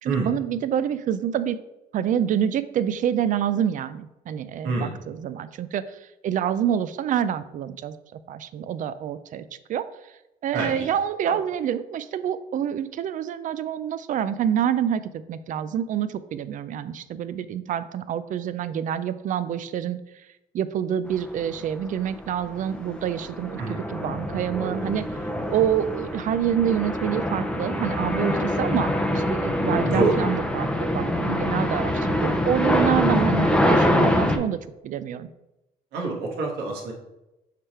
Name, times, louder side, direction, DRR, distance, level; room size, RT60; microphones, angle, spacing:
voice 1, 0.0-1.6 1.9-8.0 8.3-9.4 9.7-9.8 10.4-20.0 20.5-25.1 25.5-34.6 34.8-35.3, right 9 dB, 50° right, 14 dB, 0.4 m, -27 dB
voice 2, 10.5-10.9 11.2-11.4 23.6-23.8 29.8-30.1 35.9-36.9, right 3 dB, 80° right, -1 dB, 1.7 m, -26 dB
sound 1, 21.4-21.6 22.0-34.4, left 1 dB, 5° left, 0.6 m, -25 dB
6.6 x 3.3 x 4.3 m, 0.95 s
cardioid pair, 110°, 17 cm